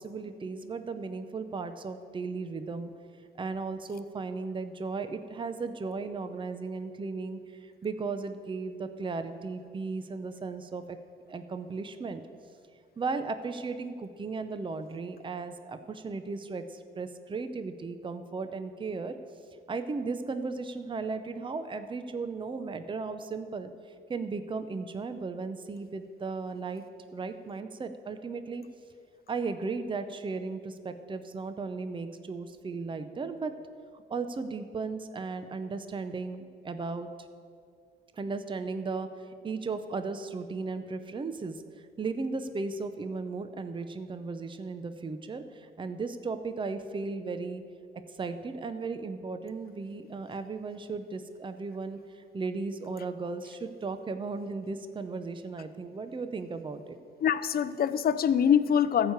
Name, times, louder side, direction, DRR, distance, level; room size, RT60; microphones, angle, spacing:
voice 1, 0.0-2.9 3.4-11.0 11.3-12.2 13.0-19.1 19.7-26.8 27.1-28.6 29.3-33.5 33.9-37.1 38.1-47.6 48.1-57.0, right 4 dB, 25° right, 9 dB, 0.7 m, -36 dB
voice 2, 57.2-59.1, left 8 dB, 50° left, 14 dB, 0.6 m, -24 dB
14.0 x 4.9 x 8.1 m, 2.2 s
cardioid pair, 90°, 20 cm